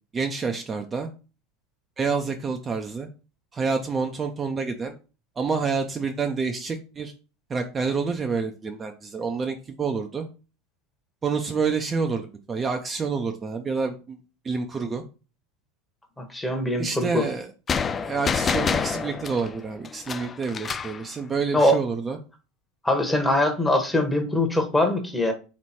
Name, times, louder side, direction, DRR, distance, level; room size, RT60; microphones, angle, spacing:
voice 1, 0.1-1.1 2.0-3.1 3.5-4.9 5.4-7.1 7.5-10.3 11.2-14.2 14.4-15.0 16.8-17.5 18.0-22.2, right 5 dB, 25° right, 4 dB, 0.5 m, -28 dB
voice 2, 16.2-17.2 21.5-21.8 22.8-25.3, left 1 dB, 10° left, 5 dB, 1.1 m, -22 dB
sound 1, 17.7-21.0, left 6 dB, 25° left, 0.3 m, -27 dB
3.3 x 3.1 x 4.2 m, 0.33 s
hypercardioid pair, 100°, 0 cm